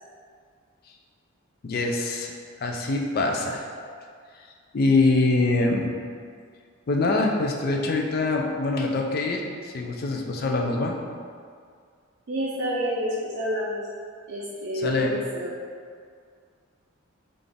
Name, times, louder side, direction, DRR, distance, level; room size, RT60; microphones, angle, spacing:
voice 1, 1.6-2.3 2.6-3.7 4.7-5.9 6.9-11.0 14.7-15.1, left 2 dB, 45° left, 1 dB, 0.3 m, -24 dB
voice 2, 12.3-13.8 14.3-15.5, equal, 55° right, -5 dB, 0.4 m, -29 dB
3.8 x 2.4 x 3.4 m, 2.1 s
head